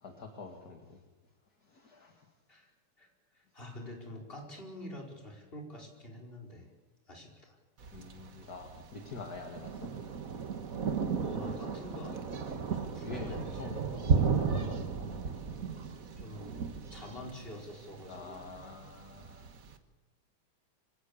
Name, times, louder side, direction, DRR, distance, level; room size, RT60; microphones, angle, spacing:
voice 1, 0.0-1.0 1.7-2.2 7.9-9.9 12.6-15.1 18.1-19.5, left 4 dB, 35° left, 3 dB, 1.9 m, -46 dB
voice 2, 3.0-6.7 7.1-7.6 11.2-14.3 16.2-18.5, left 1 dB, 15° left, 0 dB, 4.7 m, -47 dB
Thunder, 7.8-19.7, right 5 dB, 55° right, 0.9 m, -35 dB
25.5 x 17.0 x 8.6 m, 1.1 s
omnidirectional pair, 3.6 m